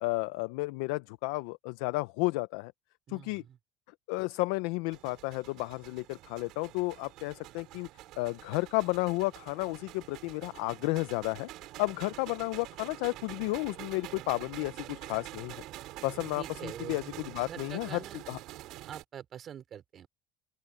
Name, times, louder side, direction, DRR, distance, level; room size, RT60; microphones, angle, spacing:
voice 1, 0.0-2.7 3.1-3.4 4.1-7.9 8.2-11.5 11.8-15.5 16.0-17.0 17.3-18.0 18.3-18.4, left 23 dB, 85° left, 0.5 m, -32 dB
voice 2, 3.1-3.6 12.1-12.2 15.9-18.2 18.9-20.1, right 9 dB, 35° right, 2.9 m, -45 dB
sound 1, 4.9-19.0, right 16 dB, 55° right, 4.0 m, -46 dB
open air
cardioid pair, 160°, 0 cm